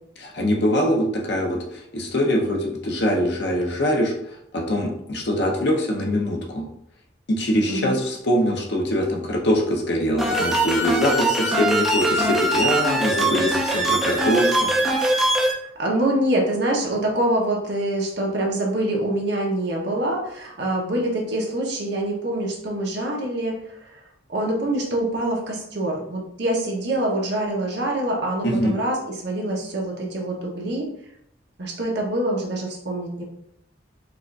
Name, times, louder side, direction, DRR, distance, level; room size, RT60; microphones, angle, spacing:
voice 1, 0.2-6.7 7.3-14.7 28.4-28.8, equal, 60° left, 0 dB, 0.7 m, -23 dB
sound 1, 10.2-15.5, right 1 dB, ahead, 0.4 m, -21 dB
voice 2, 15.8-23.9 24.3-29.0 29.2-30.9 31.6-33.2, right 1 dB, 60° right, -1 dB, 0.9 m, -25 dB
4.8 x 2.4 x 2.4 m, 0.74 s
head